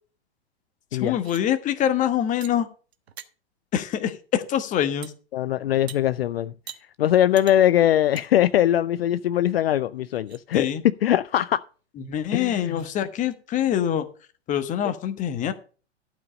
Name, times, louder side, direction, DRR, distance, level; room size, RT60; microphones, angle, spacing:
voice 1, 0.9-2.7 3.7-5.1 10.5-10.8 12.0-14.1 14.5-15.5, left 10 dB, 20° left, 1.1 m, -25 dB
sound 1, 1.1-1.4 2.4-2.5 2.9-3.3 5.0-5.1 5.9-6.0 6.7-6.8 7.4-7.6 8.2-8.3 8.7-8.8 9.5-9.6 10.0-10.4 12.1-12.2 12.7-12.9, right 9 dB, 65° right, 1.3 m, -42 dB
voice 2, 5.3-6.5 7.0-10.7 11.0-11.6 12.3-12.8, left 11 dB, 60° left, 0.5 m, -21 dB
12.0 x 5.1 x 6.4 m
figure-of-eight pair, 105°, 34 cm